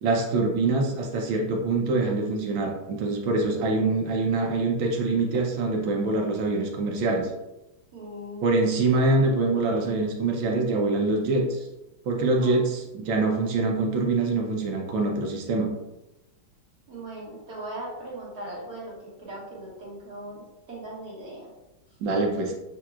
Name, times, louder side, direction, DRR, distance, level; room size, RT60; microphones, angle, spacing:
voice 1, 0.0-7.3 8.4-11.6 12.0-15.7 22.0-22.5, right 3 dB, 75° right, 1 dB, 1.6 m, -24 dB
voice 2, 7.9-8.7 12.4-12.5 16.9-21.5, right 1 dB, 50° right, -5 dB, 1.9 m, -39 dB
7.3 x 2.8 x 2.4 m, 0.95 s
omnidirectional pair, 2.2 m